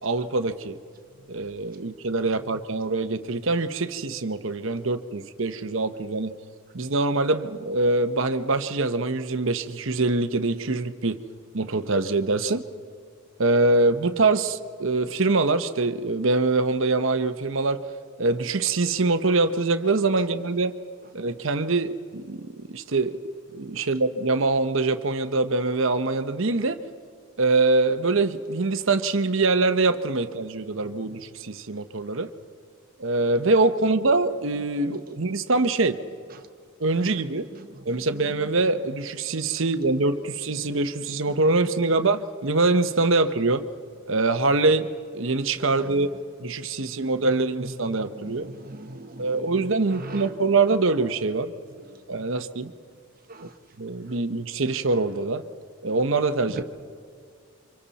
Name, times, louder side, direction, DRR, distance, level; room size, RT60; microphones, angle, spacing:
voice 1, 0.0-0.8 1.3-6.3 6.7-11.2 11.5-12.6 13.4-17.8 18.2-20.8 21.1-23.2 23.5-26.8 27.4-32.3 33.0-36.0 36.8-37.5 37.8-43.6 44.1-46.1 46.4-48.5 49.2-51.5 52.1-52.7 53.4-53.5 53.8-55.4 55.8-56.6, right 3 dB, 65° right, 1.0 m, -24 dB
voice 2, 48.1-49.5 49.9-50.3 53.3-53.5 56.6-56.7, right 2 dB, 40° right, 1.0 m, -38 dB
29.0 x 25.5 x 4.2 m
head